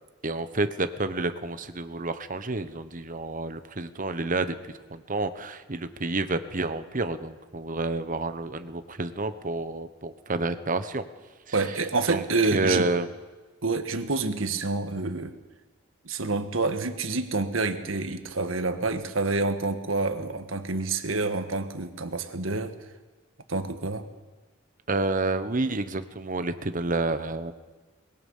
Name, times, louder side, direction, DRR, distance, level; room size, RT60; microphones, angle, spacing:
voice 1, 0.2-11.0 12.1-12.2 12.5-13.1 24.9-27.5, right 2 dB, 45° right, 10 dB, 1.2 m, -29 dB
voice 2, 11.5-12.9 13.6-15.3 16.0-22.7 23.5-24.1, right 3 dB, 90° right, 8 dB, 1.6 m, -28 dB
23.0 x 21.0 x 5.6 m, 1.3 s
head